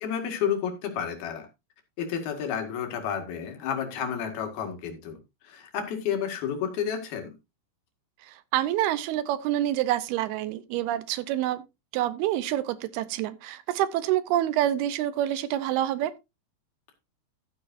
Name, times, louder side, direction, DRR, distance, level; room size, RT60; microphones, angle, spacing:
voice 1, 0.0-1.5 2.0-5.2 5.4-7.3, left 8 dB, 70° left, 3.7 m, -31 dB
voice 2, 8.2-11.6 11.9-16.1, right 13 dB, 80° right, 2.6 m, -27 dB
12.5 x 9.9 x 2.6 m
omnidirectional pair, 4.7 m